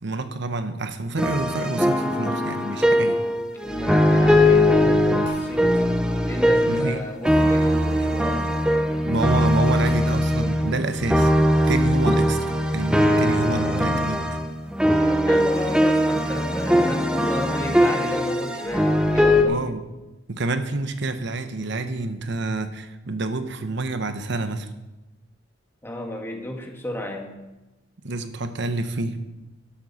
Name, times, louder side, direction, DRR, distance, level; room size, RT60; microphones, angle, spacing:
voice 1, 0.0-3.2 6.7-7.0 9.1-11.3 11.7-14.2 19.5-19.8 20.3-24.7 28.0-29.2, right 2 dB, 65° right, 9 dB, 0.9 m, -28 dB
sound 1, 1.2-7.0 7.2-19.4, equal, 5° right, 0.8 m, -20 dB
voice 2, 3.6-5.8 6.2-9.0 13.4-14.2 15.1-19.6 25.8-27.3, left 1 dB, 15° left, 1 dB, 1.7 m, -33 dB
sound 2, 5.2-5.5 7.2-7.5 9.8-10.1 10.4-10.5 11.6-11.8, equal, 85° right, 4.4 m, -42 dB
13.0 x 11.5 x 4.2 m, 1.0 s
head